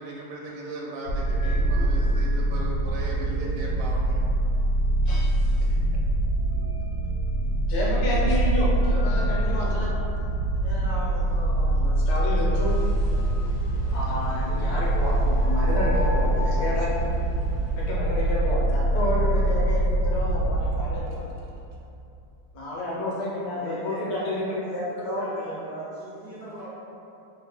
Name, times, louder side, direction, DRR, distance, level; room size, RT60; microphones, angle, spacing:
voice 1, 0.0-4.2 5.6-5.8 9.6-9.8 16.8-16.9 21.1-21.5, right 2 dB, 90° right, -4 dB, 1.4 m, -38 dB
sound 1, 1.1-21.0, right 1 dB, 80° left, 1.3 m, -24 dB
voice 2, 5.0-5.6 7.6-9.9 10.6-12.8 13.9-16.9 17.8-21.2 22.5-25.3, left 1 dB, 60° left, -5 dB, 1.1 m, -30 dB
sound 2, 12.6-17.9, equal, 35° left, 0.4 m, -40 dB
voice 3, 23.5-26.7, right 2 dB, 70° right, -12 dB, 0.5 m, -39 dB
3.3 x 2.7 x 3.4 m, 2.8 s
omnidirectional pair, 2.2 m